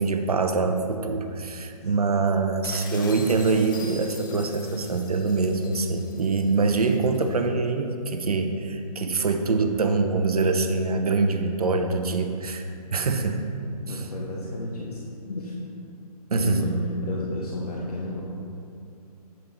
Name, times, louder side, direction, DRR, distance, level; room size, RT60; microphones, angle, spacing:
voice 1, 0.0-13.4 13.9-14.1 16.3-16.6, right 3 dB, 65° right, 6 dB, 0.6 m, -24 dB
sound 1, 2.6-7.3, left 4 dB, 30° left, 0.5 m, -44 dB
voice 2, 13.8-15.0 15.3-15.6 16.3-16.7 17.0-18.2, left 2 dB, 70° left, -4 dB, 0.9 m, -31 dB
7.5 x 5.2 x 2.9 m, 2.5 s
figure-of-eight pair, 135°, 20 cm